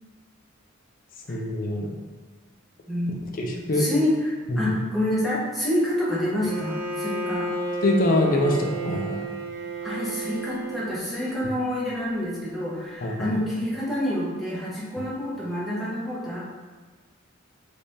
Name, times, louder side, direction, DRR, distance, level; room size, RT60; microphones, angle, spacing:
voice 1, 1.3-1.9 3.2-3.9 4.5-4.7 7.8-9.3 13.0-13.3, left 1 dB, 45° left, 1 dB, 0.5 m, -24 dB
voice 2, 2.9-3.3 3.7-7.5 9.8-16.4, left 1 dB, ahead, -8 dB, 0.9 m, -27 dB
Bowed string instrument, 6.4-11.2, right 2 dB, 75° right, 0.5 m, -32 dB
3.4 x 3.3 x 2.7 m, 1.4 s
head